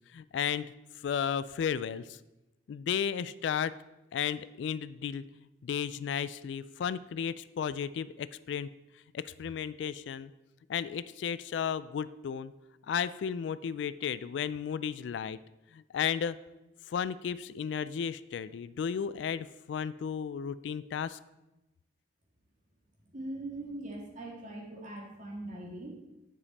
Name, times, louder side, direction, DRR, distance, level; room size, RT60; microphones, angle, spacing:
voice 1, 0.1-0.7 1.0-2.2 2.7-3.7 4.1-5.2 5.6-8.7 9.1-10.3 10.7-12.5 12.9-15.4 15.7-16.4 16.9-21.2, left 7 dB, 75° left, 16 dB, 0.3 m, -34 dB
voice 2, 23.1-26.0, right 1 dB, 45° right, -1 dB, 1.8 m, -41 dB
9.9 x 5.2 x 4.1 m, 0.97 s
head